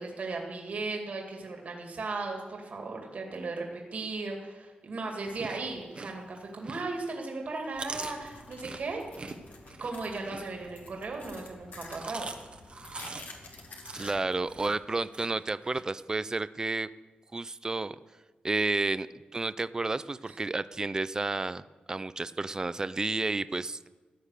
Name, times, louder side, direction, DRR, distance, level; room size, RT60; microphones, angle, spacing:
voice 1, 0.0-9.0 9.8-12.3 20.2-20.4, right 3 dB, 55° right, 1 dB, 2.4 m, -36 dB
Chewing mastication, 5.2-7.1 7.5-11.0 11.7-15.8, right 3 dB, 35° right, 1.1 m, -43 dB
sound 1, 7.7-14.6, left 3 dB, 70° left, 2.2 m, -50 dB
voice 2, 13.9-16.9 17.3-18.0 18.4-19.1 19.3-23.9, right 3 dB, 20° right, 16 dB, 0.4 m, -31 dB
15.0 x 9.6 x 6.6 m, 1.2 s
wide cardioid pair, 130°, 3 cm